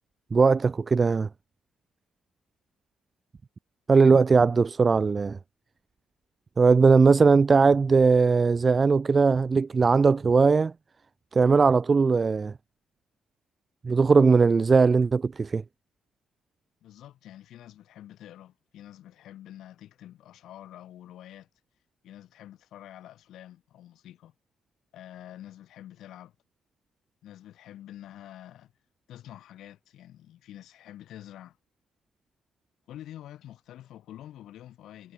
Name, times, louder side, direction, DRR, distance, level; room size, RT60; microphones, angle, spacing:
voice 1, 0.3-1.3 3.9-5.4 6.6-10.7 11.3-12.5 13.8-15.6, right 4 dB, 35° right, 0.6 m, -19 dB
voice 2, 16.8-21.5 22.0-24.3 24.9-26.3 27.2-28.7 29.1-31.6 32.9-35.1, left 12 dB, 80° left, 8.0 m, -47 dB
cardioid pair, 90°, 0 cm